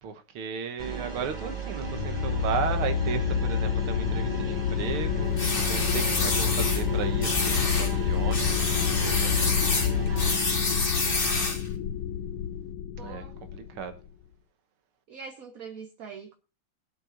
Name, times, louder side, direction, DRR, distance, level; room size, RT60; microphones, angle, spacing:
voice 1, 0.0-9.6 11.0-11.6 13.0-13.3 13.5-14.0, right 7 dB, 75° right, 2.0 m, -35 dB
sound 1, 0.8-10.4, right 5 dB, 20° right, 1.7 m, -36 dB
sound 2, 1.8-14.1, left 8 dB, 75° left, 1.6 m, -28 dB
sound 3, 5.4-6.8 7.2-7.9 8.3-11.7, left 3 dB, 25° left, 2.0 m, -28 dB
voice 2, 10.1-10.8 13.0-13.3 15.1-16.3, right 5 dB, 50° right, 1.3 m, -43 dB
22.5 x 7.7 x 2.6 m
omnidirectional pair, 2.4 m